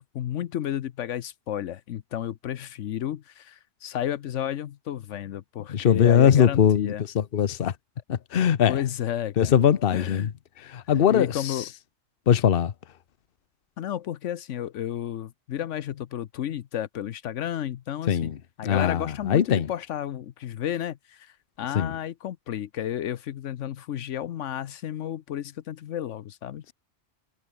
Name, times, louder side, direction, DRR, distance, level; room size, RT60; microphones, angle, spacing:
voice 1, 0.0-7.1 8.7-9.5 9.9-10.3 11.1-11.7 13.8-18.3 18.6-26.6, left 11 dB, 80° left, 1.1 m, -32 dB
voice 2, 5.7-7.7 8.1-8.8 9.4-10.3 10.6-11.6 12.3-12.7 18.1-18.4 18.6-19.7 21.7-21.9, left 8 dB, 55° left, 1.0 m, -21 dB
omnidirectional pair, 1.2 m